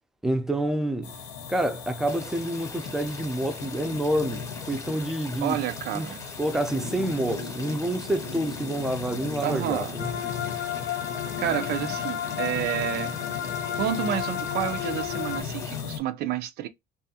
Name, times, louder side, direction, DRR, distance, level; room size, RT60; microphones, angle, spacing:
voice 1, 0.2-1.1 1.5-5.6 5.9-6.1 6.4-10.1, right 1 dB, 5° right, 0.4 m, -28 dB
sound 1, 1.0-16.0, left 7 dB, 90° left, 0.8 m, -37 dB
sound 2, 2.1-15.8, left 2 dB, 20° left, 0.8 m, -44 dB
voice 2, 5.4-6.2 9.4-10.0 11.4-13.2 13.8-16.7, right 11 dB, 75° right, 0.4 m, -29 dB
sound 3, 10.0-15.4, left 10 dB, 65° left, 0.5 m, -32 dB
2.6 x 2.3 x 2.7 m
cardioid pair, 110°, 17 cm